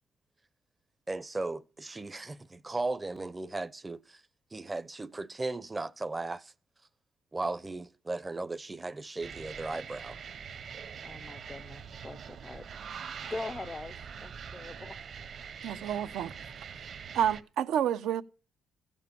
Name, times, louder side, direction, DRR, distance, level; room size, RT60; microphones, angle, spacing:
voice 1, 1.1-4.2 4.5-6.5 7.3-10.2, right 2 dB, 15° right, 0.6 m, -36 dB
sound 1, 9.2-17.4, right 7 dB, 55° right, 1.0 m, -44 dB
voice 2, 11.0-12.7 13.3-15.0, left 2 dB, 20° left, 0.6 m, -42 dB
voice 3, 15.6-16.3 17.1-18.2, right 10 dB, 85° right, 0.8 m, -29 dB
15.0 x 7.3 x 6.9 m
cardioid pair, 120°, 0 cm